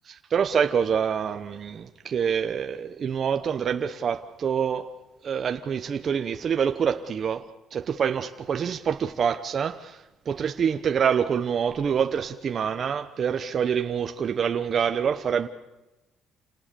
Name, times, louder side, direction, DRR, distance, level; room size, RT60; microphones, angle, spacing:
voice 1, 0.1-4.9 5.2-15.5, right 7 dB, 40° right, 1.0 m, -26 dB
28.0 x 19.0 x 6.9 m
cardioid pair, 120°, 0 cm